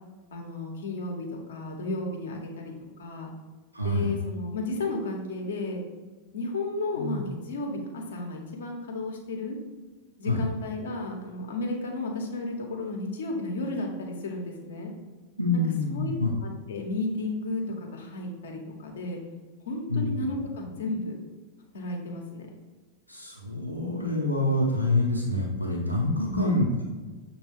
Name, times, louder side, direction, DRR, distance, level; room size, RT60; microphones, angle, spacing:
voice 1, 0.3-3.3 3.8-5.8 6.3-9.6 10.2-14.9 15.9-16.1 16.4-19.2 19.6-21.2 21.7-22.5 26.3-26.6, left 2 dB, 65° left, 1 dB, 0.8 m, -33 dB
voice 2, 3.7-4.1 6.9-7.2 10.2-10.4 15.4-16.3 19.9-20.1 23.1-26.8, left 2 dB, 85° right, -3 dB, 0.5 m, -26 dB
6.6 x 2.2 x 3.4 m, 1.3 s
figure-of-eight pair, 90°, 0 cm